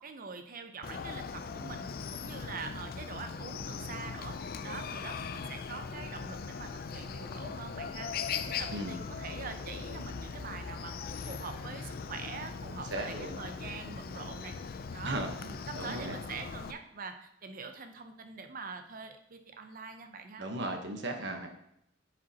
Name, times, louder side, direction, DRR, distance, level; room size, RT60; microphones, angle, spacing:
voice 1, 0.0-1.8 2.1-4.4 4.6-8.1 8.4-10.9 11.2-14.6 14.9-20.5, right 4 dB, 50° right, 7 dB, 0.6 m, -44 dB
Chicken rooster, 0.8-16.7, left 5 dB, 50° left, 0.4 m, -40 dB
voice 2, 12.9-13.4 15.0-15.3 15.7-16.2 20.4-21.5, right 1 dB, 65° right, 4 dB, 1.1 m, -36 dB
9.6 x 5.2 x 2.9 m, 0.78 s
head